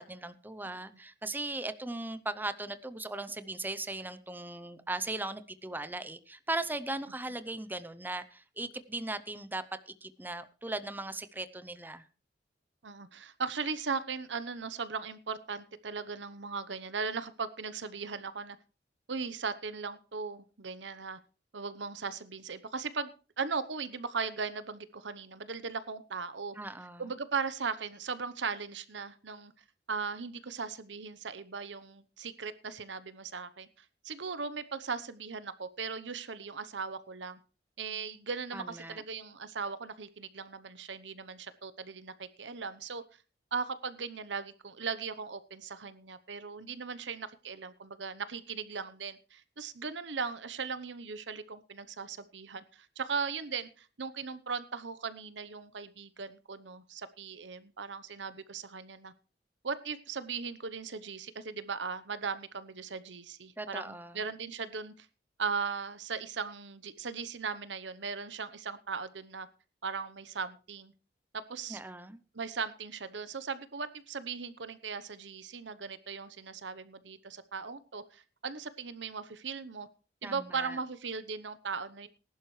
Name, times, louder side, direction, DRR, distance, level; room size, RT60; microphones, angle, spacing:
voice 1, 0.0-12.0 26.6-27.0 38.5-39.0 63.6-64.2 71.7-72.2 80.2-80.8, right 2 dB, 10° right, 13 dB, 0.7 m, -38 dB
voice 2, 12.8-18.6 19.1-21.2 21.5-23.1 23.4-26.5 27.0-29.5 29.9-37.4 37.8-43.0 43.5-59.1 59.6-65.1 65.4-69.5 69.8-70.9 71.3-71.8 72.3-79.9 80.2-82.1, right 5 dB, 80° right, 14 dB, 0.9 m, -38 dB
19.5 x 11.5 x 3.2 m, 0.35 s
head